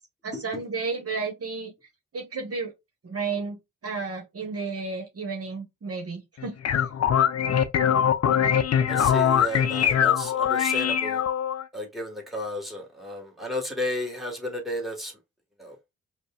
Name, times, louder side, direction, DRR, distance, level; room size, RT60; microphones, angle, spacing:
voice 1, 0.2-1.7 2.1-2.7 3.0-3.6 3.8-6.5, right 4 dB, 40° right, 1.1 m, -32 dB
sound 1, 6.4-11.6, left 8 dB, 45° left, 0.6 m, -22 dB
voice 2, 8.9-11.2 11.7-15.1 15.6-15.8, left 1 dB, ahead, 1.5 m, -33 dB
5.1 x 2.2 x 2.4 m
hypercardioid pair, 40°, 35 cm